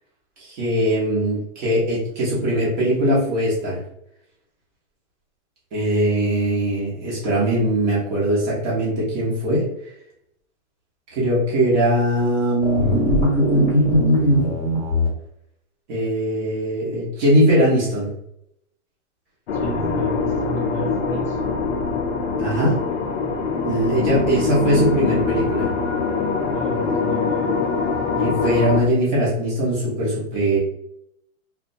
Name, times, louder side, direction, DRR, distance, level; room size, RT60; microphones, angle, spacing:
voice 1, 0.4-3.8 5.7-9.6 11.1-14.5 15.9-18.1 22.4-22.8 23.6-25.7 28.2-30.6, equal, 35° right, -6 dB, 1.1 m, -20 dB
sound 1, 12.6-15.1, equal, 15° left, 1.1 m, -23 dB
sound 2, 19.5-28.8, left 5 dB, 55° left, 0.6 m, -23 dB
voice 2, 19.5-21.4 26.5-27.6, equal, 5° right, -8 dB, 0.7 m, -31 dB
2.5 x 2.2 x 2.5 m, 0.76 s
hypercardioid pair, 150°, 41 cm